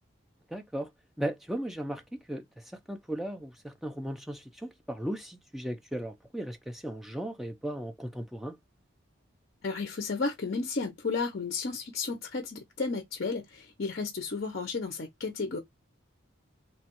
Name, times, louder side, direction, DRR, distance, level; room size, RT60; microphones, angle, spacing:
voice 1, 0.5-0.9 1.2-8.6, right 1 dB, ahead, 0.4 m, -36 dB
voice 2, 9.6-15.6, left 4 dB, 50° left, 0.5 m, -33 dB
2.9 x 2.3 x 2.9 m
head